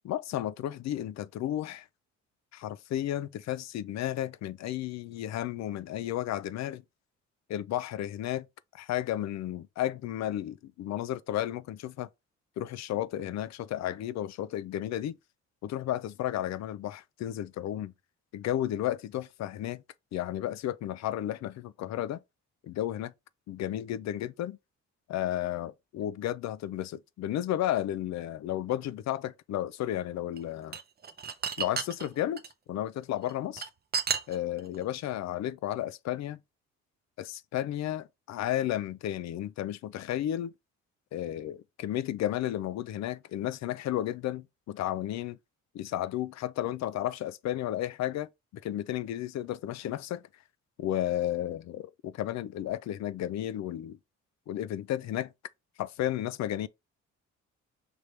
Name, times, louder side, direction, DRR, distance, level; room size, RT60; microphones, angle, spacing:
voice 1, 0.0-1.8 2.5-6.8 7.5-8.5 8.7-12.1 12.6-15.2 15.6-17.9 18.3-19.8 20.1-22.2 22.6-23.1 23.5-24.6 25.1-30.8 31.6-32.4 32.7-33.7 34.3-36.4 37.2-40.5 41.1-45.4 45.7-50.2 50.8-54.0 54.5-55.3 55.8-56.7, left 12 dB, 65° left, 0.4 m, -33 dB
sound 1, 30.4-32.5 33.2-34.7, right 6 dB, 35° right, 0.6 m, -32 dB
5.1 x 3.0 x 3.2 m
cardioid pair, 90°, 30 cm